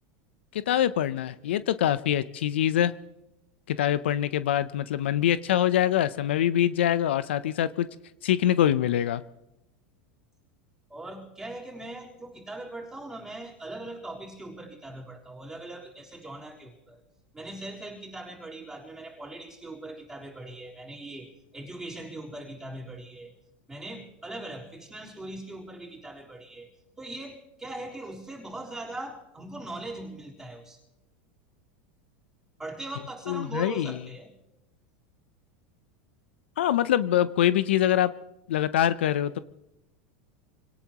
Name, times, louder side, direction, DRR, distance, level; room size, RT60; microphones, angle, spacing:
voice 1, 0.5-2.9 3.7-7.9 8.2-9.2 33.3-33.9 36.6-38.1 38.5-39.4, left 11 dB, 85° left, 15 dB, 0.6 m, -24 dB
voice 2, 10.9-17.0 17.3-23.4 23.7-26.7 27.0-30.8 32.6-34.3, right 2 dB, 10° right, -4 dB, 4.0 m, -40 dB
25.5 x 18.0 x 3.0 m, 0.88 s
supercardioid pair, 125°, 6 cm